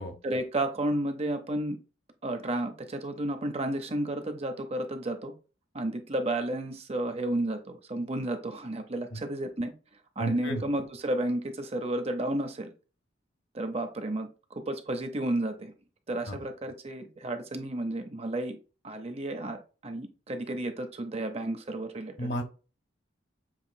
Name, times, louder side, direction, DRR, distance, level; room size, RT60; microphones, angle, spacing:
voice 1, 0.2-1.8 2.2-5.3 5.7-9.7 10.2-12.7 13.5-15.7 16.1-18.6 18.8-22.3, right 1 dB, 35° right, 6 dB, 0.7 m, -32 dB
voice 2, 10.2-10.6 16.3-16.4 22.2-22.4, equal, 60° left, 4 dB, 1.1 m, -32 dB
7.3 x 3.0 x 2.3 m, 0.33 s
head